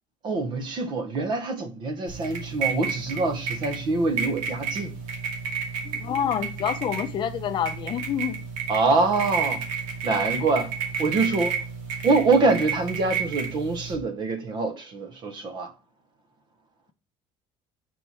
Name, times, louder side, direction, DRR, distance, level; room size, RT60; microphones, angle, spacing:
voice 1, 0.2-4.9 8.7-9.6 10.0-10.7 11.0-11.6 12.0-15.7, right 3 dB, 40° right, 0.9 m, -25 dB
sound 1, 2.1-13.9, right 6 dB, 75° right, 2.4 m, -31 dB
voice 2, 5.8-8.4, left 9 dB, 40° left, 0.7 m, -28 dB
4.7 x 4.4 x 5.6 m
cardioid pair, 165°, 12 cm